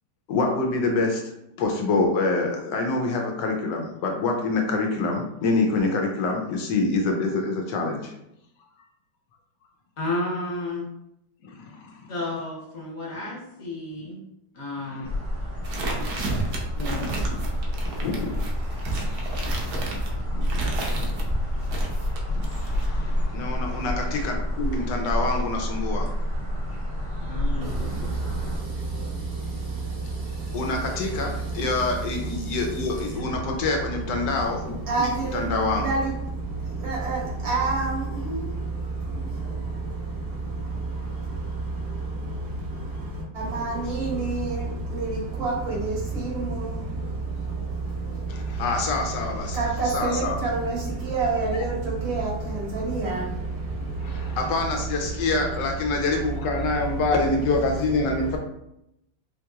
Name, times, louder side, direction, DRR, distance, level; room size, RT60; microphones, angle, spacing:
voice 1, 0.3-8.1 11.4-12.1 14.0-14.1 14.8-15.1 15.6-16.5 17.9-20.6 20.9-21.1 21.5-26.1 30.5-35.9 48.3-50.4 51.5-51.7 54.0-58.4, left 3 dB, 75° left, 2 dB, 1.2 m, -27 dB
voice 2, 10.0-10.9 12.1-14.2 14.5-15.1 16.7-17.0 27.3-28.1, left 2 dB, 50° left, -5 dB, 1.2 m, -32 dB
sound 1, 15.0-28.6, equal, 15° left, 0.5 m, -28 dB
sound 2, 15.6-21.3 21.7-22.9, right 3 dB, 65° right, 1.1 m, -32 dB
voice 3, 27.6-31.1 31.4-31.6 32.4-32.5 33.1-33.4 34.8-35.4 35.8-48.6 49.5-54.4 58.2-58.3, right 3 dB, 80° right, -5 dB, 2.0 m, -29 dB
4.4 x 2.8 x 2.3 m, 0.81 s
omnidirectional pair, 2.0 m